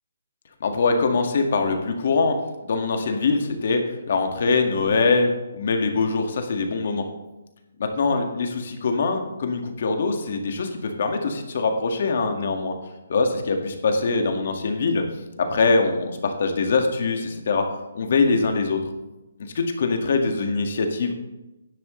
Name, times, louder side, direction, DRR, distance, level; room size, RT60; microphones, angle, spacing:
voice 1, 0.6-2.3 2.6-3.8 4.1-7.0 7.8-12.7 13.1-15.0 15.4-17.6 17.9-18.8 19.6-21.1, left 4 dB, 55° left, 4 dB, 1.7 m, -23 dB
12.0 x 10.5 x 3.2 m, 1.0 s
hypercardioid pair, 160°, 0 cm